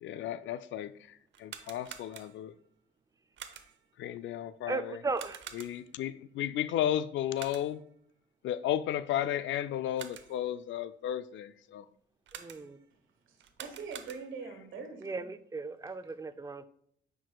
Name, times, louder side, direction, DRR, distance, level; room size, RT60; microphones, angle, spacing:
voice 1, 0.0-2.5 4.0-5.0 5.5-7.8 8.4-11.9, left 11 dB, 70° left, 0.4 m, -34 dB
sound 1, 1.3-2.6 3.4-3.9 5.1-6.0 7.3-7.9 9.7-10.5 12.3-12.9 13.4-14.5, right 9 dB, 70° right, 0.7 m, -48 dB
voice 2, 4.7-5.4 12.3-12.8 15.0-16.7, right 3 dB, 15° right, 0.4 m, -36 dB
voice 3, 13.3-15.3, right 5 dB, 85° right, 1.5 m, -43 dB
9.0 x 4.7 x 2.3 m
cardioid pair, 90°, 20 cm